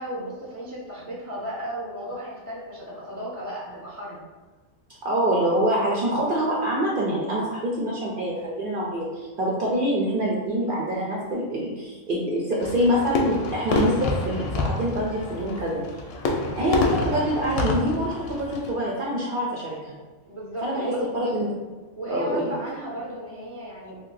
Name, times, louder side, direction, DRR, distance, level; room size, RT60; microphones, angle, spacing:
voice 1, 0.0-4.2 20.3-21.0 22.0-24.0, right 1 dB, 15° left, -6 dB, 0.5 m, -34 dB
voice 2, 5.0-15.8 16.6-20.0 20.6-20.8 21.1-21.5 22.1-22.4, equal, 60° right, -4 dB, 0.6 m, -25 dB
Fireworks, 12.6-18.7, left 2 dB, 65° left, 0.7 m, -27 dB
2.6 x 2.2 x 3.9 m, 1.3 s
omnidirectional pair, 1.3 m